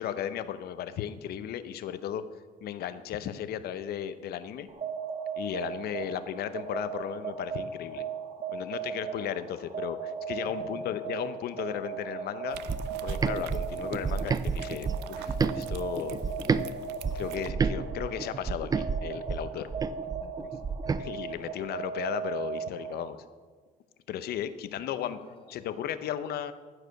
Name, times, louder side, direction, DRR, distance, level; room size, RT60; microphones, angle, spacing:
voice 1, 0.0-2.2 2.6-4.7 5.4-8.0 8.5-12.6 13.0-16.2 17.1-19.7 21.0-23.2 24.1-25.2 25.5-26.5, left 10 dB, 70° left, 12 dB, 0.7 m, -35 dB
sound 1, 4.7-23.2, right 6 dB, 45° right, 1.3 m, -38 dB
voice 2, 9.4-9.8 10.4-11.1 20.1-21.1 24.8-25.6, left 4 dB, 30° left, 5 dB, 1.4 m, -52 dB
sound 2, 12.5-17.5, right 13 dB, 80° right, 0.4 m, -46 dB
sound 3, 12.7-16.6 17.0-21.0, right 5 dB, 20° right, 0.4 m, -30 dB
14.0 x 4.9 x 6.4 m, 1.5 s
cardioid pair, 110°, 17 cm